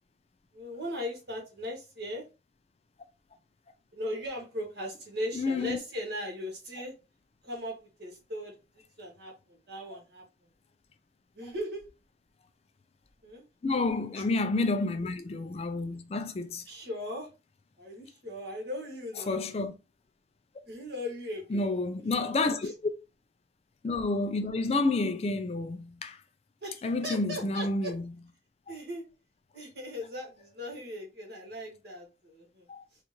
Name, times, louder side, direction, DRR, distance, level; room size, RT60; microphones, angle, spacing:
voice 1, 0.5-2.2 3.9-6.9 7.4-8.6 9.0-10.2 11.4-11.8 13.2-13.5 16.7-17.3 17.8-19.4 20.7-21.8 26.6-27.9 28.7-29.0 29.5-32.7, equal, 60° right, 1.8 m, -38 dB
voice 2, 5.3-5.8 9.9-10.0 13.6-16.7 19.2-19.7 21.5-22.9 23.8-26.2 26.8-28.1 28.7-28.8 32.7-32.8, left 3 dB, 35° left, 0.3 m, -30 dB
4.3 x 2.5 x 2.9 m
head